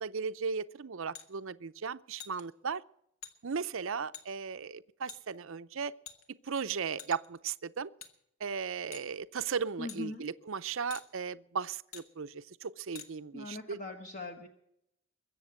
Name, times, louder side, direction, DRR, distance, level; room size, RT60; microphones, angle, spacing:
voice 1, 0.0-2.8 3.4-5.9 6.4-7.9 8.4-13.8, right 6 dB, 65° right, 0.6 m, -36 dB
sound 1, 1.1-1.3 2.2-2.4 3.2-3.3 4.1-4.3 5.1-5.2 6.1-6.5 7.0-7.4 8.0-8.1 8.9-9.1 9.9-10.0 10.9-11.1 11.9-12.1 13.0-13.1, left 8 dB, 75° left, 1.8 m, -46 dB
voice 2, 9.8-10.2 13.3-14.5, left 3 dB, 35° left, 1.2 m, -41 dB
22.5 x 7.7 x 7.7 m
head